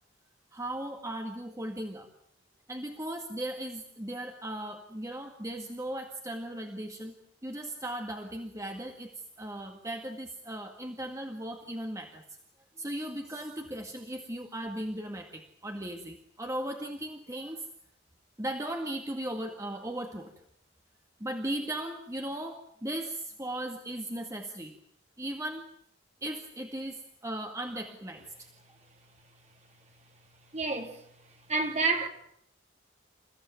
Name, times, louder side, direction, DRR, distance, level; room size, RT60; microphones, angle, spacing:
voice 1, 0.5-2.1 2.7-7.1 7.4-9.1 9.4-12.2 12.8-17.7 18.4-20.3 21.2-24.8 25.2-25.6 26.2-28.5, right 1 dB, 15° right, 2.0 m, -37 dB
voice 2, 30.5-32.1, right 3 dB, 35° right, 3.5 m, -30 dB
29.5 x 16.0 x 9.2 m
head